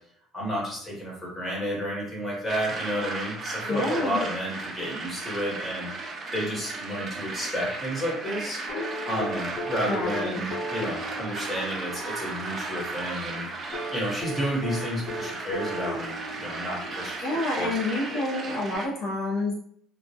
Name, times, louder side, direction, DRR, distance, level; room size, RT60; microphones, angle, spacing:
voice 1, 0.3-5.9 6.3-8.6 9.1-17.8 18.1-18.4, equal, 10° left, -5 dB, 0.9 m, -31 dB
sound 1, 2.5-18.9, right 3 dB, 30° right, 0.4 m, -36 dB
voice 2, 3.7-4.2 9.9-10.4 17.2-19.5, left 2 dB, 65° left, -4 dB, 0.6 m, -28 dB
sound 2, 8.7-12.8 13.7-17.3 18.7-18.8, left 1 dB, 40° left, 1.0 m, -36 dB
2.2 x 2.0 x 2.7 m, 0.65 s
cardioid pair, 145°, 0 cm